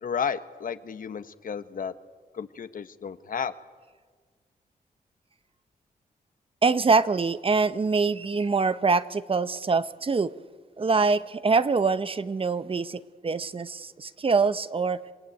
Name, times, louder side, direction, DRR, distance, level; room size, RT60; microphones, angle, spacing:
voice 1, 0.0-1.9 2.3-3.5, left 7 dB, 65° left, 1.1 m, -32 dB
voice 2, 6.6-10.3 10.8-15.0, right 4 dB, 35° right, 0.8 m, -24 dB
27.5 x 18.5 x 9.1 m
cardioid pair, 85°, 15 cm